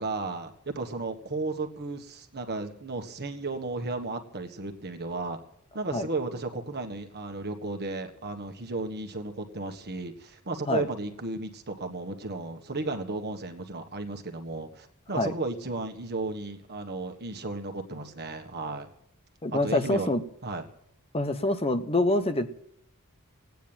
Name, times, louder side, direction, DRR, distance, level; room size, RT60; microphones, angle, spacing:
voice 1, 0.0-5.4 5.7-18.9 19.5-20.1 20.4-20.7, right 3 dB, 45° right, 6 dB, 1.5 m, -34 dB
voice 2, 19.4-20.2 21.1-22.5, left 2 dB, 25° left, 9 dB, 0.9 m, -26 dB
17.0 x 9.4 x 8.9 m, 0.71 s
head